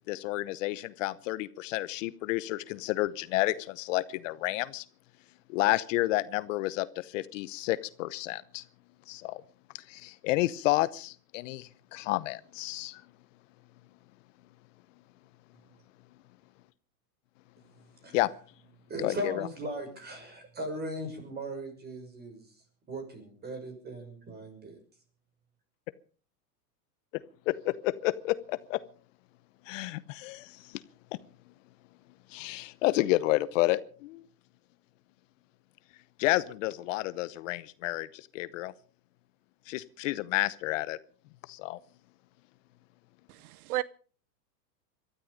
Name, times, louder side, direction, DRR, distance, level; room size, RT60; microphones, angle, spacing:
voice 1, 0.1-4.8 5.5-8.6 9.1-9.4 9.9-13.0 18.1-18.3 19.0-19.5 27.5-28.8 29.7-30.5 32.3-34.2 36.2-38.1 38.3-38.7 39.7-41.0 41.5-41.8, left 18 dB, 55° left, 0.9 m, -30 dB
voice 2, 18.9-22.4 22.9-24.7, right 1 dB, 20° right, 6.5 m, -38 dB
voice 3, 43.3-43.8, right 17 dB, 70° right, 0.7 m, -33 dB
21.5 x 13.0 x 5.1 m
hypercardioid pair, 130°, 46 cm